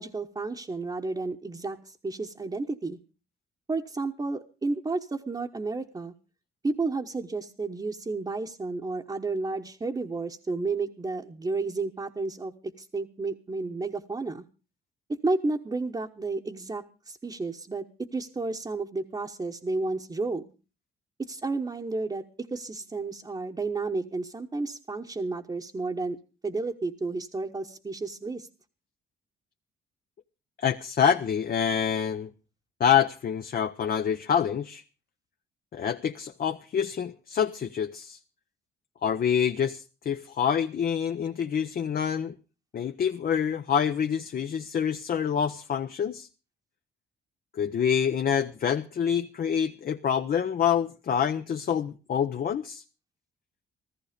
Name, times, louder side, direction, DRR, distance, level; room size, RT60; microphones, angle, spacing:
voice 1, 0.0-3.0 3.7-6.1 6.6-14.4 15.2-20.5 21.2-26.2 26.4-28.5, right 3 dB, 20° right, 1.1 m, -32 dB
voice 2, 30.6-32.3 32.8-34.8 35.7-38.2 39.0-42.4 42.7-46.3 47.5-52.8, left 8 dB, 50° left, 0.8 m, -26 dB
14.5 x 14.5 x 5.1 m
cardioid pair, 90°, 20 cm